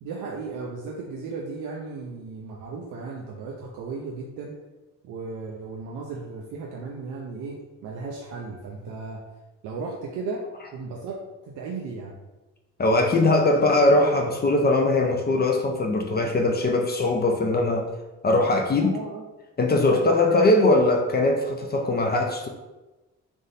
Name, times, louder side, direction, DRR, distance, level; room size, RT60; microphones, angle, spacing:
voice 1, 0.0-4.5 5.0-9.2 9.6-10.4 10.7-11.2 11.4-12.2 18.8-19.3 19.9-20.6, right 4 dB, 85° right, -1 dB, 0.6 m, -35 dB
voice 2, 12.8-17.9 18.2-19.0 19.6-22.5, left 2 dB, 35° left, 2 dB, 0.5 m, -21 dB
3.5 x 2.6 x 4.0 m, 1.1 s
cardioid pair, 90°, 30 cm